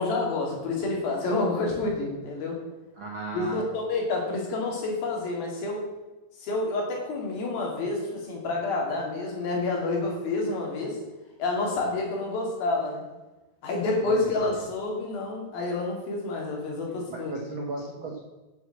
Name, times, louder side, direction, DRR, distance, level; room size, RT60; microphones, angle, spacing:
voice 1, 0.0-2.6 3.3-5.8 6.4-11.0 11.4-13.0 13.6-17.3, left 3 dB, 80° left, -1 dB, 4.4 m, -28 dB
voice 2, 3.0-3.6 14.0-14.5 17.1-18.2, right 3 dB, 60° right, -1 dB, 1.3 m, -35 dB
8.8 x 7.4 x 7.4 m, 1.1 s
omnidirectional pair, 4.2 m